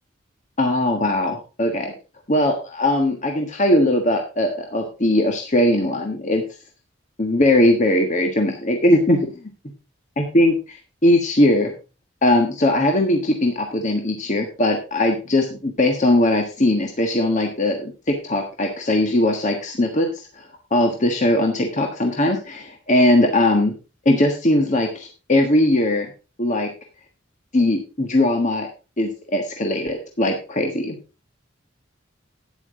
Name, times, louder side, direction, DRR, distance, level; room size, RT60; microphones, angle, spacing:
voice 1, 0.6-1.9 2.3-6.4 7.2-9.3 10.2-11.7 12.2-20.1 20.4-20.5 20.7-23.7 24.0-26.1 26.4-26.7 27.5-28.7 29.0-31.0, left 1 dB, 40° left, 3 dB, 1.5 m, -20 dB
12.0 x 9.6 x 3.7 m, 0.32 s
head